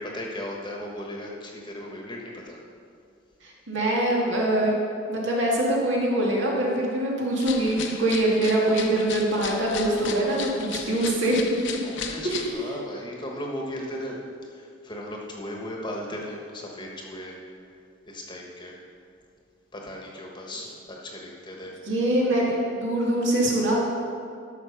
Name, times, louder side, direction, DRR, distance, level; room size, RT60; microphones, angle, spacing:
voice 1, 0.0-2.6 10.6-10.8 11.8-14.2 14.5-17.4 18.1-18.8 19.7-21.7, left 1 dB, 25° left, -1 dB, 1.3 m, -36 dB
voice 2, 3.4-4.7 5.1-11.4 12.2-12.7 21.9-23.8, right 1 dB, 65° right, -3 dB, 2.3 m, -24 dB
sound 1, 7.4-12.5, left 6 dB, 65° left, 0.8 m, -36 dB
13.0 x 5.9 x 5.7 m, 2.4 s
head